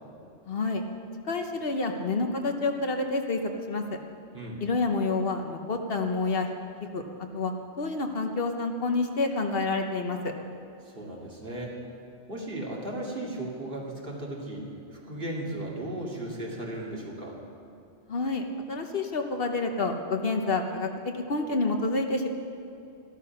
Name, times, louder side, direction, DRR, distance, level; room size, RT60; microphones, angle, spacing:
voice 1, 0.5-0.8 1.3-3.4 3.7-3.8 4.6-6.5 6.9-7.0 7.3-10.3 18.1-22.3, left 3 dB, 60° left, 4 dB, 1.1 m, -28 dB
voice 2, 10.8-11.7 12.3-17.4, right 1 dB, 50° right, -3 dB, 2.5 m, -36 dB
14.0 x 12.0 x 5.8 m, 2.6 s
omnidirectional pair, 1.2 m